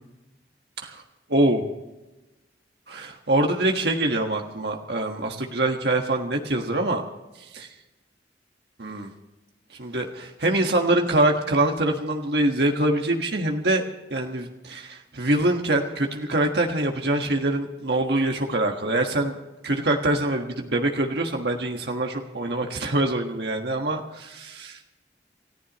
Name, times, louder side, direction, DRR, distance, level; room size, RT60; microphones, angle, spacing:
voice 1, 1.3-1.6 2.9-7.0 7.5-7.7 8.8-9.1 9.8-13.8 14.1-19.4 19.6-24.0 24.3-25.0, right 1 dB, 70° right, 2 dB, 1.5 m, -24 dB
29.0 x 14.5 x 3.1 m, 1.1 s
head